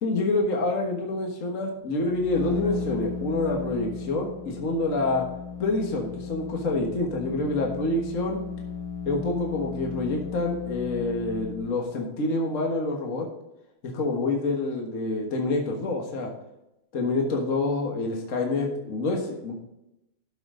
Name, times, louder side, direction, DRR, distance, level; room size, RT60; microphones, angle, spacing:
voice 1, 0.0-5.3 5.6-8.4 9.0-13.3 13.8-16.3 16.9-19.5, left 2 dB, 40° left, 0 dB, 1.7 m, -27 dB
sound 1, 1.9-11.8, left 6 dB, 70° left, 0.9 m, -35 dB
13.0 x 5.9 x 3.8 m, 0.90 s
omnidirectional pair, 2.3 m